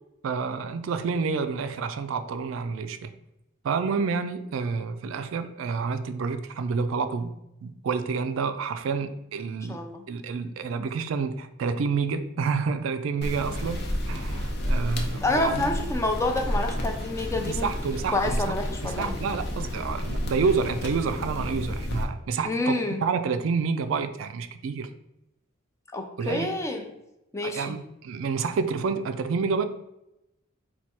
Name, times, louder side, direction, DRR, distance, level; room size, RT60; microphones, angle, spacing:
voice 1, 0.2-3.1 3.6-7.3 7.6-9.8 10.1-13.8 14.1-15.7 17.4-18.4 18.8-22.7 23.0-24.9 26.2-26.5 27.4-29.6, right 5 dB, 65° right, 10 dB, 0.3 m, -29 dB
voice 2, 9.7-10.0 15.2-17.7 18.1-19.1 22.4-23.0 25.9-26.9 27.3-27.7, left 2 dB, 15° left, 3 dB, 0.4 m, -28 dB
sound 1, 13.2-22.0, equal, 50° left, 0.7 m, -31 dB
4.5 x 2.3 x 4.2 m, 0.88 s
head